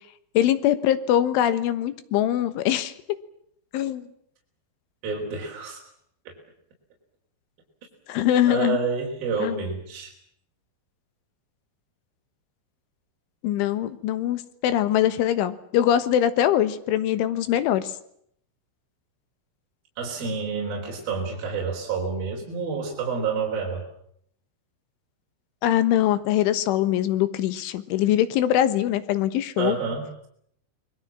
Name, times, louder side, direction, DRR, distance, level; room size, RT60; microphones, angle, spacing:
voice 1, 0.4-2.9 3.7-4.1 8.1-8.8 9.4-9.7 13.4-17.9 25.6-29.8, left 11 dB, 75° left, 13 dB, 3.6 m, -22 dB
voice 2, 5.0-5.8 6.3-6.4 8.5-10.1 20.0-23.8 29.6-30.3, right 5 dB, 45° right, -1 dB, 5.9 m, -29 dB
28.5 x 21.5 x 7.5 m, 0.69 s
omnidirectional pair, 5.9 m